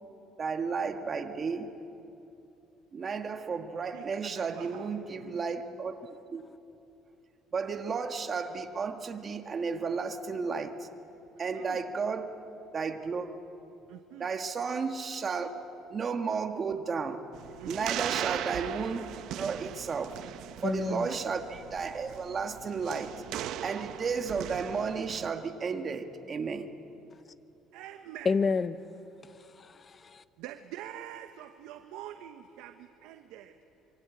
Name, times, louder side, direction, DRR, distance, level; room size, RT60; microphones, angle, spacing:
voice 1, 0.4-1.7 2.9-6.0 6.3-6.4 7.5-10.9 11.4-12.3 12.7-13.4 14.2-15.5 15.9-17.2 17.6-20.2 20.6-23.1 23.6-26.7, right 5 dB, 30° right, 1.7 m, -33 dB
voice 2, 3.9-5.4 11.5-11.8 13.9-14.3 17.6-18.0 20.9-21.2 27.7-28.3 30.4-33.5, right 12 dB, 85° right, 1.1 m, -45 dB
sound 1, 17.3-25.3, right 12 dB, 65° right, 0.9 m, -39 dB
voice 3, 20.6-21.1 28.2-28.8 29.2-30.2, left 5 dB, 30° left, 0.8 m, -30 dB
26.0 x 23.5 x 8.5 m
cardioid pair, 130°, 0 cm